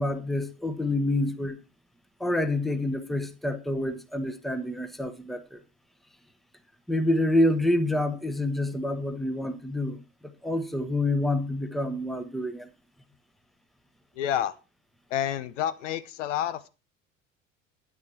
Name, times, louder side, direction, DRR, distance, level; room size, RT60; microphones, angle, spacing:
voice 1, 0.0-1.6 2.2-5.6 6.9-10.0 10.4-12.7, left 1 dB, ahead, 1.0 m, -27 dB
voice 2, 14.2-14.6 15.1-16.7, left 10 dB, 65° left, 0.7 m, -29 dB
9.8 x 9.5 x 4.3 m
figure-of-eight pair, 65°, 39 cm